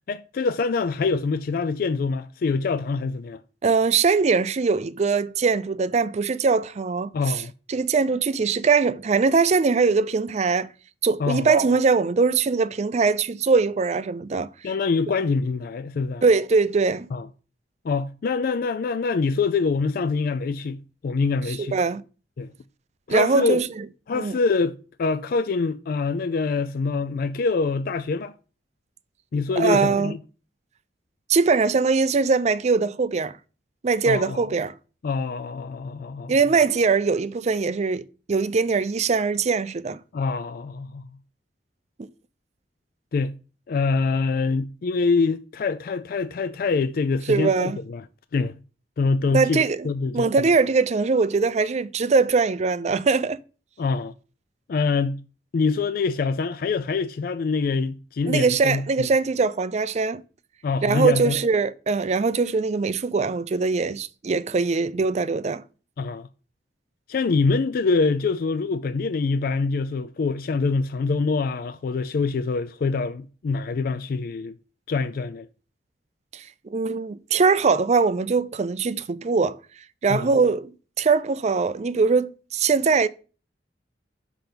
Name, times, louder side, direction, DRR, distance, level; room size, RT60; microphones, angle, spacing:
voice 1, 0.1-3.4 7.1-7.5 11.2-11.5 14.6-16.2 17.1-17.3 17.8-21.8 22.4-22.5 23.1-23.6 24.1-28.3 29.3-30.2 34.1-34.4 35.0-36.4 40.1-41.1 43.1-43.3 43.7-48.1 48.3-48.6 49.0-50.5 53.8-54.1 54.7-55.2 55.5-59.1 60.6-61.4 66.0-66.3 67.1-74.5 74.9-75.5 80.1-80.3, left 4 dB, 55° left, 0.4 m, -25 dB
voice 2, 3.6-7.1 7.7-10.7 11.0-14.5 16.2-17.1 21.6-22.0 23.1-23.8 24.1-24.3 29.6-30.1 31.3-33.3 33.8-34.7 36.3-38.0 38.3-40.0 47.3-47.8 49.3-49.9 50.1-53.4 58.3-60.2 60.8-65.6 76.3-79.6 80.0-80.7 81.0-83.1, right 4 dB, 40° right, 0.4 m, -21 dB
6.0 x 5.8 x 5.1 m
head